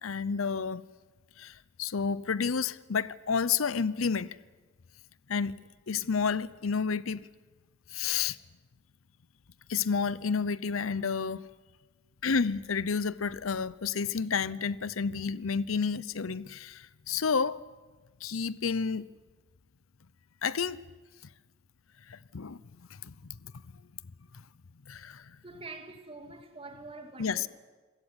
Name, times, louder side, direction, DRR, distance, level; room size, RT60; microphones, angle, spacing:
voice 1, 0.0-0.8 1.4-4.4 5.3-5.6 5.9-7.3 7.9-8.4 9.7-11.4 12.2-17.6 18.2-19.1 20.4-20.8 22.1-23.5 24.9-25.4 27.2-27.5, left 5 dB, 90° left, 0.7 m, -30 dB
voice 2, 25.4-27.5, right 3 dB, 25° right, 2.3 m, -45 dB
26.5 x 16.0 x 9.8 m
head